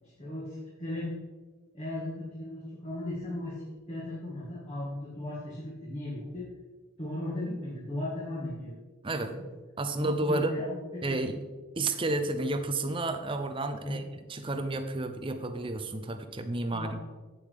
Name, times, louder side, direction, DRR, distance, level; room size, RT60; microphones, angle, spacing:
voice 1, 0.0-1.1 1.7-6.5 7.0-8.7 9.3-9.4 9.9-11.2 13.8-14.1 16.6-17.0, left 1 dB, 30° left, -7 dB, 1.9 m, -37 dB
voice 2, 9.8-10.5 11.0-11.4 11.8-14.0 14.3-17.0, right 2 dB, 25° right, 8 dB, 0.6 m, -31 dB
8.5 x 8.3 x 3.5 m, 1.3 s
head